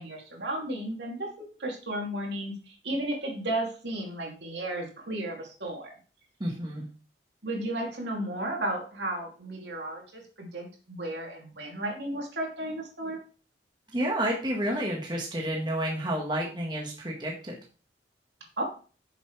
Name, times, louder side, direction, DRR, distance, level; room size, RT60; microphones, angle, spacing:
voice 1, 0.0-5.9 7.4-13.2 18.6-18.7, right 1 dB, 75° right, 0 dB, 2.8 m, -34 dB
voice 2, 6.4-6.9 13.9-17.6, right 1 dB, 25° right, -1 dB, 1.5 m, -30 dB
9.7 x 6.9 x 3.3 m, 0.39 s
head